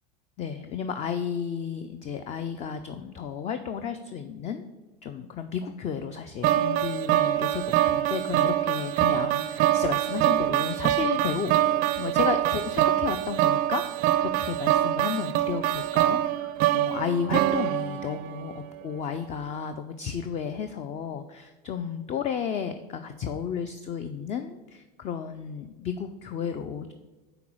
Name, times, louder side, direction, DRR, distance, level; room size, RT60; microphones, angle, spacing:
voice 1, 0.4-4.7 5.0-11.6 11.9-26.9, left 7 dB, 30° left, 9 dB, 0.4 m, -33 dB
sound 1, 6.4-18.6, right 13 dB, 45° right, 0.4 m, -25 dB
5.8 x 3.9 x 6.1 m, 1.2 s
hypercardioid pair, 100°, 21 cm